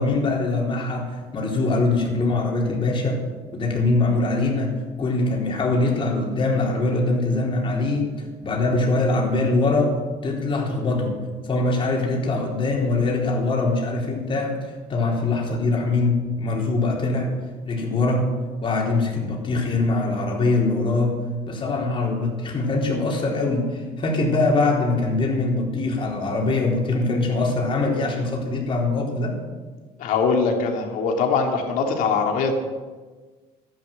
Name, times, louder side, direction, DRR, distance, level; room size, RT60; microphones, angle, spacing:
voice 1, 0.0-3.2 3.5-4.7 5.0-8.1 8.4-9.9 10.2-11.1 11.4-14.5 14.9-17.3 17.7-18.3 18.6-21.1 21.5-29.4, left 2 dB, 40° left, -1 dB, 3.9 m, -22 dB
voice 2, 30.0-32.6, left 4 dB, 75° left, 2 dB, 2.6 m, -22 dB
13.0 x 11.0 x 7.8 m, 1.4 s
cardioid pair, 115°, 14 cm